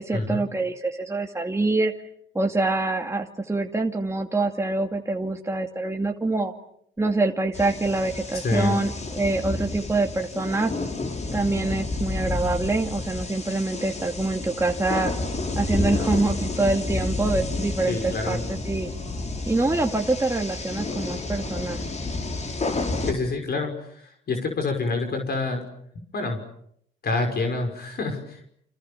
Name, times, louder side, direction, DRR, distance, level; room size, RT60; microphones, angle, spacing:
voice 1, 0.0-1.9 2.3-6.5 7.0-10.7 11.3-15.1 15.6-18.9 19.4-21.8, right 2 dB, 15° right, 2 dB, 2.3 m, -25 dB
sound 1, 7.5-23.1, left 2 dB, 35° left, 6.2 m, -30 dB
voice 2, 8.3-8.8 17.9-18.4 23.1-25.6 26.1-26.4 27.0-28.5, left 3 dB, 55° left, 4 dB, 5.9 m, -27 dB
29.5 x 27.5 x 7.1 m, 0.70 s
cardioid pair, 90°, 20 cm